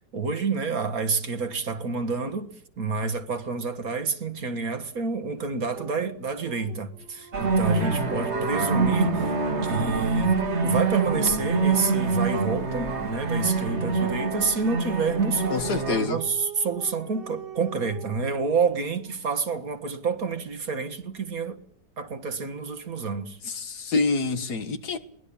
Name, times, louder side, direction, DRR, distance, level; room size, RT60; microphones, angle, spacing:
voice 1, 0.1-9.3 9.6-10.4 10.6-21.6 22.0-23.4, right 4 dB, 55° right, 2.0 m, -28 dB
Dog, 5.7-11.5 14.7-19.3, right 4 dB, 85° right, 4.8 m, -42 dB
sound 1, 7.3-16.1, right 4 dB, 40° right, 1.9 m, -25 dB
voice 2, 15.5-16.2 23.5-25.0, left 4 dB, 65° left, 2.1 m, -26 dB
22.5 x 19.0 x 8.7 m
omnidirectional pair, 1.8 m